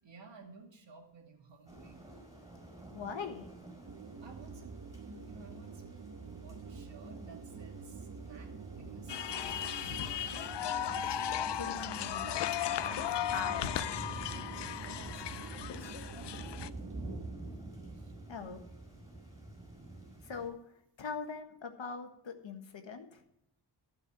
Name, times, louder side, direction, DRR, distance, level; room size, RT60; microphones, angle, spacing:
voice 1, 0.0-2.1 4.0-10.4 14.7-16.6 17.9-18.2, right 3 dB, 75° right, 1 dB, 2.3 m, -56 dB
sound 1, 1.7-20.5, right 2 dB, 10° right, 4.8 m, -49 dB
voice 2, 2.9-3.5 11.5-12.4 12.7-13.0 13.3-14.3 18.2-18.6 20.2-23.2, left 5 dB, 90° left, 6 dB, 1.5 m, -42 dB
sound 2, 3.9-17.5, right 5 dB, 45° right, 0.8 m, -47 dB
sound 3, 9.1-16.7, left 11 dB, 70° left, 0.5 m, -36 dB
14.5 x 5.6 x 5.9 m, 0.78 s
wide cardioid pair, 140°, 44 cm